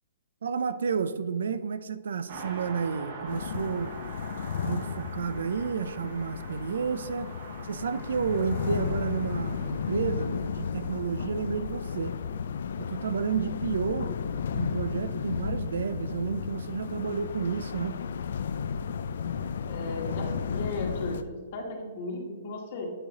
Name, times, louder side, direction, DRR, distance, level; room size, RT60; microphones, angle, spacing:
voice 1, 0.4-3.9 4.6-7.3 7.6-12.1 12.8-14.1 14.5-18.0, right 6 dB, 75° right, 14 dB, 0.4 m, -31 dB
Car passing by, 2.3-12.2 12.5-12.6, right 3 dB, 40° right, 1.2 m, -45 dB
sound 1, 3.3-21.2, left 6 dB, 60° left, 0.4 m, -33 dB
voice 2, 19.7-22.9, left 2 dB, 35° left, 1 dB, 1.5 m, -36 dB
8.8 x 4.8 x 4.0 m, 1.5 s
hypercardioid pair, 170°, 0 cm